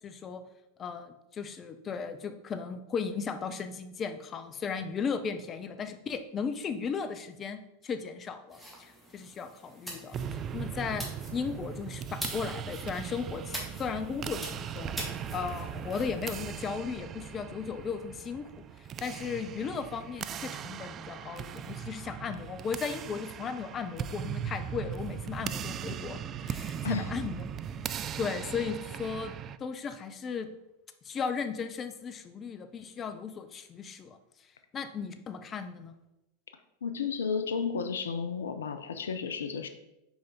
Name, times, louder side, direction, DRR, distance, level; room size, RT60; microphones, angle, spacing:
voice 1, 0.0-0.4 0.8-11.0 11.3-15.0 15.3-18.5 19.0-27.4 28.2-29.3 29.6-30.5 31.0-34.2 34.7-35.9, left 6 dB, 30° left, 9 dB, 0.6 m, -36 dB
sound 1, 8.5-16.4, equal, 5° left, 1.9 m, -44 dB
sound 2, 10.1-29.6, right 8 dB, 35° right, 0.3 m, -39 dB
voice 2, 36.8-39.7, left 5 dB, 80° left, 9 dB, 0.5 m, -32 dB
5.7 x 5.0 x 4.3 m, 0.90 s
hypercardioid pair, 90°, 0 cm